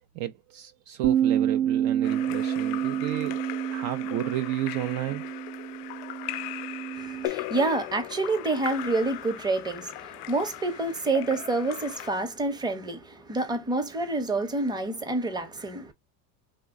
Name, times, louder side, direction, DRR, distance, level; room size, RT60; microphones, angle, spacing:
voice 1, 0.2-3.4 3.7-5.2, right 14 dB, 50° right, 0.4 m, -32 dB
Bass guitar, 1.0-7.3, right 10 dB, 70° right, 0.8 m, -28 dB
Splash splatter / Drip / Trickle dribble, 2.0-12.1, left 16 dB, 75° left, 0.5 m, -38 dB
voice 2, 6.9-15.9, right 2 dB, 10° right, 0.7 m, -28 dB
3.2 x 2.1 x 3.6 m
supercardioid pair, 110°, 46 cm